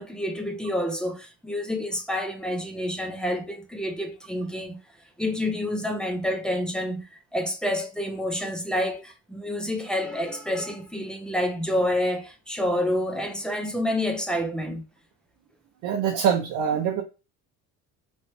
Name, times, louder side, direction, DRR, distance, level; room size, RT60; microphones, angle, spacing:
voice 1, 0.0-4.8 5.2-14.8, left 1 dB, 5° left, 0.3 m, -28 dB
voice 2, 15.8-17.0, right 7 dB, 60° right, 0.6 m, -24 dB
3.1 x 2.9 x 2.6 m
cardioid pair, 155°, 35 cm